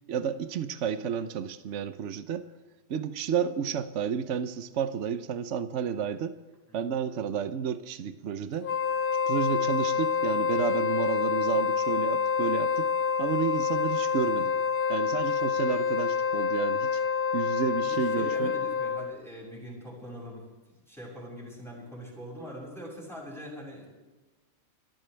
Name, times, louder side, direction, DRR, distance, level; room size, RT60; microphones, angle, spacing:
voice 1, 0.1-2.5 2.9-6.4 6.7-8.7 9.3-12.9 13.2-14.6 14.9-17.0 17.3-18.5, right 7 dB, 65° right, 11 dB, 1.1 m, -31 dB
Wind instrument woodwind instrument, 8.6-19.2, left 6 dB, 55° left, 0.6 m, -27 dB
voice 2, 17.8-23.9, equal, ahead, -4 dB, 6.7 m, -43 dB
29.0 x 13.5 x 3.4 m, 1.2 s
omnidirectional pair, 1.4 m